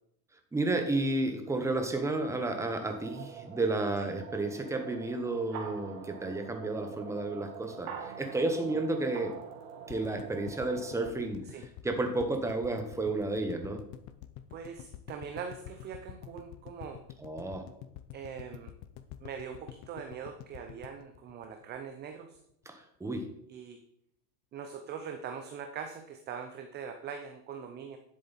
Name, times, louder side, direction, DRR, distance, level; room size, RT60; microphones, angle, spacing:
voice 1, 0.5-9.4 9.9-11.4 11.8-13.8 17.2-17.7 22.7-23.3, right 2 dB, 5° right, 5 dB, 1.0 m, -32 dB
sound 1, 3.0-11.1, right 7 dB, 55° right, 2.4 m, -45 dB
sound 2, 9.9-22.0 22.3-22.4 22.6-22.7, left 12 dB, 35° left, 0.7 m, -47 dB
voice 2, 14.5-17.0 18.1-18.7 19.2-22.4 23.5-23.8 24.5-28.0, right 7 dB, 20° right, 6 dB, 0.6 m, -42 dB
10.5 x 7.7 x 4.1 m, 0.76 s
supercardioid pair, 140°, 49 cm